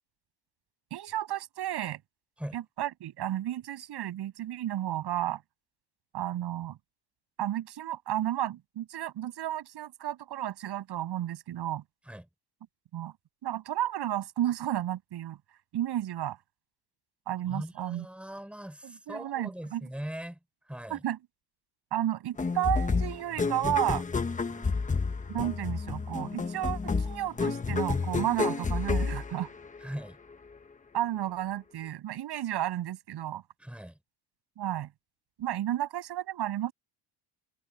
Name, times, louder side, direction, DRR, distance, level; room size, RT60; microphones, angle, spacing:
voice 1, 0.9-2.0 2.5-5.4 6.1-6.8 7.4-11.8 12.9-13.1 13.4-15.4 15.7-16.4 17.3-18.0 18.8-19.9 20.9-21.2 21.9-24.0 25.3-29.5 30.9-33.4 34.6-34.9 35.4-36.7, right 12 dB, 60° right, 7.8 m, -32 dB
voice 2, 17.4-20.4 20.6-21.0 24.5-24.9 29.8-30.2 33.6-34.0, right 1 dB, 5° right, 6.7 m, -41 dB
sound 1, 22.4-30.0, left 4 dB, 15° left, 1.2 m, -30 dB
cardioid pair, 115°, 45 cm